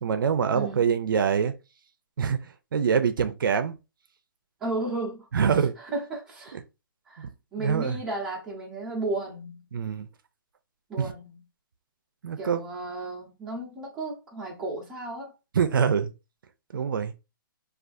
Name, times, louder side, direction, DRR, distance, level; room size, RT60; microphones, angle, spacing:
voice 1, 0.0-1.6 2.2-2.4 2.7-3.8 5.3-5.8 7.2-7.3 7.6-8.0 9.7-10.1 11.0-11.1 12.2-12.6 15.5-16.1 16.7-17.1, right 7 dB, 70° right, 0.5 m, -24 dB
voice 2, 0.5-0.8 4.6-5.3 5.8-6.6 7.1-9.6 10.9-11.4 12.4-15.3, right 2 dB, 5° right, 0.7 m, -34 dB
3.4 x 2.4 x 2.5 m
hypercardioid pair, 175°, 12 cm